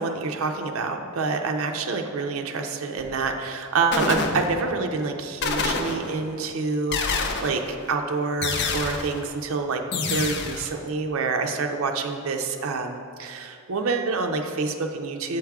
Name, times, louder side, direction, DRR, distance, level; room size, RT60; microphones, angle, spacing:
voice 1, 0.0-7.6 7.9-9.8 10.1-15.4, right 4 dB, 70° right, 4 dB, 0.5 m, -27 dB
sound 1, 3.0-3.4 3.9-4.9 5.4-6.3 6.9-7.7 8.4-9.3 9.9-10.7, left 4 dB, 55° left, 0.5 m, -27 dB
7.2 x 4.6 x 3.5 m, 2.4 s
head